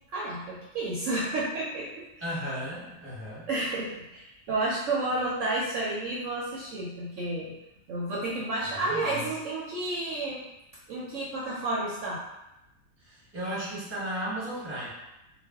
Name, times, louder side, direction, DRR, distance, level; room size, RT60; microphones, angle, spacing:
voice 1, 0.1-1.9 3.5-7.5 7.9-10.4 10.9-12.2, right 2 dB, 65° right, -6 dB, 0.8 m, -31 dB
voice 2, 2.2-3.5 8.8-9.3 13.0-14.9, equal, 10° right, -7 dB, 0.7 m, -35 dB
2.5 x 2.2 x 3.4 m, 0.91 s
omnidirectional pair, 1.6 m